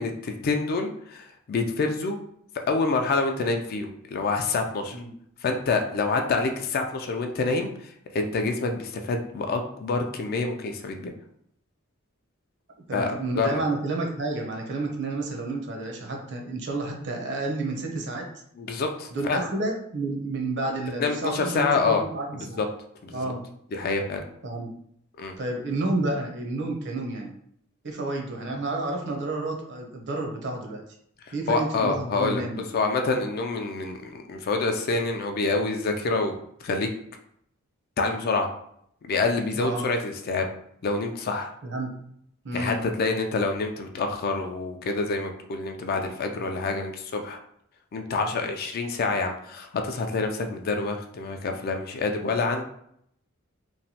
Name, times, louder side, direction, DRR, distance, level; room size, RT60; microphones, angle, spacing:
voice 1, 0.0-2.2 2.7-5.0 5.4-7.7 8.1-11.1 12.9-13.1 13.4-13.5 18.6-19.4 21.0-22.0 22.3-22.7 23.0-23.2 23.7-24.2 25.2-25.4 31.5-36.4 36.6-36.9 38.0-38.5 39.0-40.5 40.8-41.5 42.5-47.4 47.9-52.6, left 3 dB, 45° left, 5 dB, 0.3 m, -27 dB
voice 2, 12.9-18.3 19.1-22.6 23.1-23.4 24.4-24.7 25.4-27.3 27.8-30.8 31.3-32.7 39.5-39.8 41.6-41.9 42.4-42.8, right 2 dB, 55° right, 2 dB, 0.6 m, -30 dB
3.0 x 2.1 x 2.7 m, 0.69 s
head